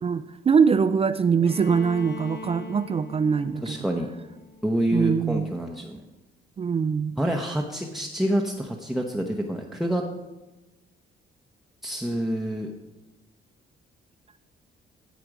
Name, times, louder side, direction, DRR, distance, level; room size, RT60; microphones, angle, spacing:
voice 1, 0.0-3.9 4.9-5.5 6.6-7.2, right 6 dB, 30° right, 12 dB, 0.4 m, -23 dB
Bowed string instrument, 1.4-5.3, left 4 dB, 60° left, 0.8 m, -42 dB
voice 2, 3.6-4.1 4.6-6.0 7.2-10.0 11.8-12.7, right 1 dB, ahead, 0 dB, 0.8 m, -27 dB
14.0 x 5.1 x 4.8 m, 1.1 s
cardioid pair, 95°, 20 cm